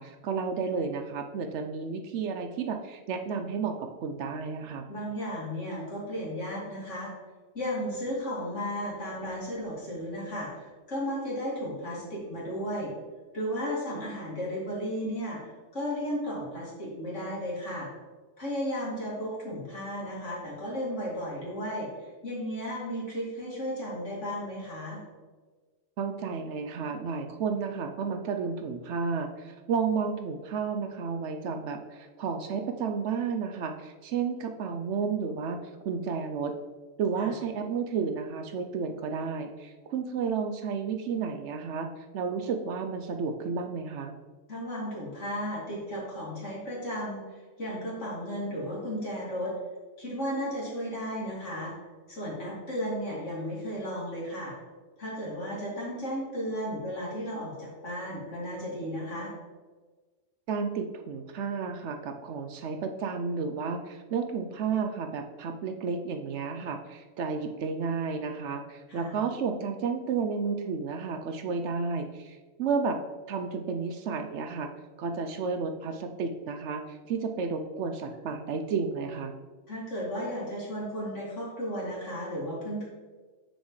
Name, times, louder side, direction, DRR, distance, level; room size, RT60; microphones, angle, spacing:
voice 1, 0.0-4.9 26.0-36.5 37.0-44.1 60.5-73.0 73.3-74.7 75.0-79.3, right 5 dB, 70° right, 6 dB, 0.8 m, -32 dB
voice 2, 4.9-7.1 7.5-12.9 13.3-17.9 18.4-21.9 22.2-25.0 37.2-37.3 44.5-47.2 47.6-49.5 50.0-51.7 52.1-54.5 55.0-59.3 68.9-69.2 79.7-82.9, equal, 65° left, -6 dB, 2.7 m, -34 dB
7.1 x 6.2 x 3.1 m, 1.3 s
omnidirectional pair, 1.3 m